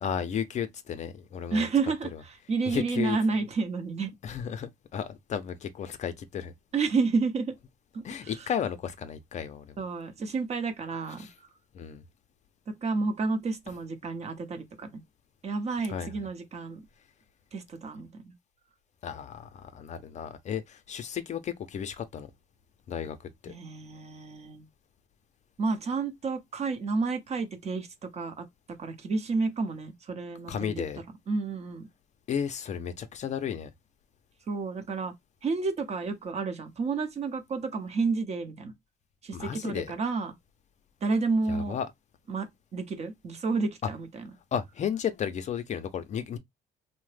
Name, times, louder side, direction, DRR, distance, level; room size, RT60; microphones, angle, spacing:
voice 1, 0.0-1.7 2.7-3.2 4.2-6.5 8.0-9.8 11.2-11.3 11.7-12.0 15.9-16.1 19.0-22.3 22.9-23.5 30.5-31.0 32.3-33.7 39.3-39.9 41.5-41.9 44.5-46.4, left 8 dB, 45° left, 0.5 m, -33 dB
voice 2, 1.5-4.1 6.7-7.6 7.9-8.4 9.8-11.3 12.7-15.0 15.4-16.8 17.5-18.3 23.5-24.6 25.6-27.9 28.1-28.4 28.8-30.8 31.3-31.9 34.5-35.1 35.4-38.7 39.2-40.3 41.0-41.8 42.3-44.3, right 4 dB, 40° right, 0.7 m, -30 dB
2.8 x 2.1 x 3.2 m
cardioid pair, 110°, 17 cm